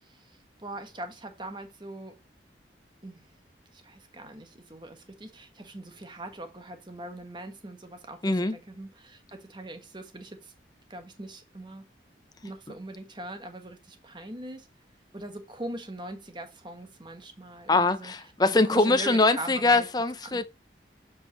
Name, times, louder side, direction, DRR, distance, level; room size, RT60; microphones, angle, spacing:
voice 1, 0.0-2.2 3.0-3.3 3.7-10.5 10.9-11.9 12.4-14.7 15.1-18.1 18.5-19.9 20.2-20.4, right 1 dB, 25° right, 1.4 m, -41 dB
voice 2, 8.2-8.6 17.7-20.4, left 3 dB, 20° left, 0.6 m, -23 dB
7.4 x 5.2 x 3.0 m
head